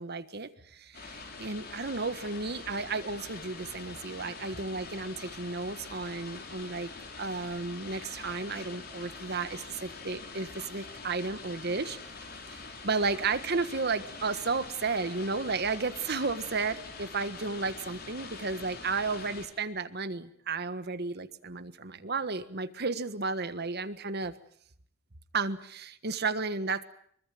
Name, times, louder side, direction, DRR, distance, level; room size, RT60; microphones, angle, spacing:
voice 1, 0.0-6.9 7.2-12.0 12.8-24.3 25.3-26.8, right 4 dB, 55° right, 12 dB, 1.5 m, -33 dB
sound 1, 0.9-19.5, left 4 dB, 55° left, 4.7 m, -44 dB
25.0 x 23.5 x 7.7 m, 0.65 s
head